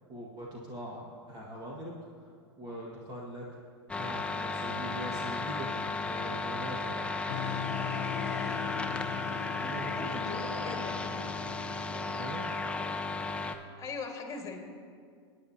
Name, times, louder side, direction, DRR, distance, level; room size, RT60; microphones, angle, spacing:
voice 1, 0.1-1.9 2.6-3.6 3.9-7.1 9.6-10.5 12.1-12.5, equal, 30° right, -4 dB, 1.9 m, -42 dB
sound 1, 3.9-13.5, left 3 dB, 10° left, 0.6 m, -34 dB
sound 2, 7.3-13.1, left 10 dB, 80° left, 0.8 m, -40 dB
voice 2, 9.5-11.1 13.8-14.6, left 4 dB, 25° left, 3 dB, 1.9 m, -41 dB
19.5 x 9.8 x 2.9 m, 2.1 s
hypercardioid pair, 105°, 14 cm